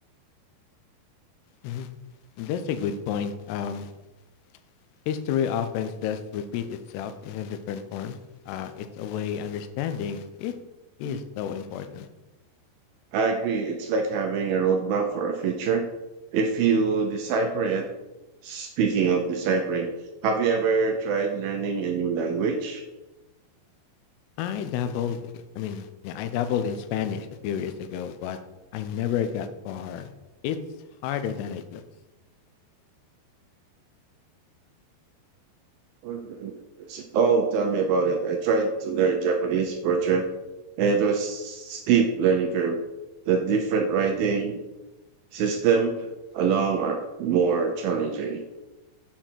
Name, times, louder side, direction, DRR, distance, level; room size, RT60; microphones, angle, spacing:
voice 1, 2.4-3.9 5.1-8.2 8.5-10.5 11.0-12.1 24.4-25.2 25.6-28.4 28.7-30.1 30.4-30.6 31.0-31.8, left 8 dB, 80° left, 9 dB, 2.7 m, -30 dB
voice 2, 13.1-15.8 16.3-17.9 18.4-19.9 20.2-22.8 36.0-40.3 40.8-42.8 43.3-44.6 45.3-48.4, right 5 dB, 80° right, 4 dB, 2.2 m, -24 dB
7.6 x 6.9 x 4.4 m, 1.0 s
omnidirectional pair, 5.0 m